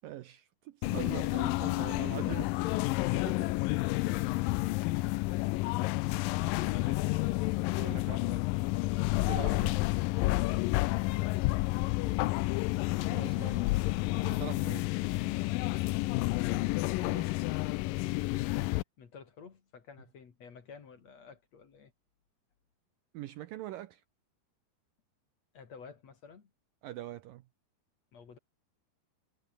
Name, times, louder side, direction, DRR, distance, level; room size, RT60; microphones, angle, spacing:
voice 1, 0.0-2.5 3.1-3.5 6.6-7.1 7.8-8.5 9.3-9.8 13.1-13.7 14.2-14.9 17.0-17.3 23.1-24.0 26.8-27.4, right 14 dB, 75° right, 2.2 m, -43 dB
sound 1, 0.8-18.8, left 20 dB, 90° left, 2.0 m, -30 dB
voice 2, 6.8-7.1 11.0-11.5 19.0-21.9 25.5-26.5 28.1-28.4, left 6 dB, 45° left, 3.3 m, -52 dB
omnidirectional pair, 4.7 m